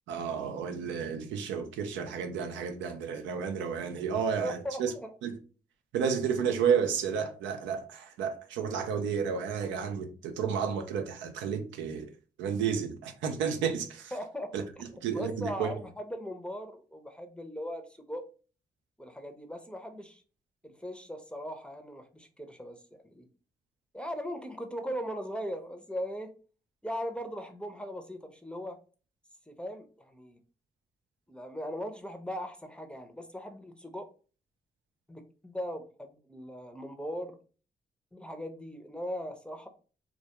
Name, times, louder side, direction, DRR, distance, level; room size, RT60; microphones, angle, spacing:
voice 1, 0.1-4.9 5.2-5.3 5.9-12.1 12.4-14.1 14.5-14.6 15.0-15.7, right 7 dB, 90° right, 0.4 m, -31 dB
voice 2, 4.4-5.1 14.1-14.5 15.1-18.2 19.0-20.2 20.6-22.8 23.1-23.3 23.9-26.3 26.8-28.8 29.5-30.4 31.3-34.1 35.1-37.4 38.1-39.7, equal, 5° left, 0.5 m, -39 dB
2.3 x 2.2 x 2.8 m
supercardioid pair, 45°, 19 cm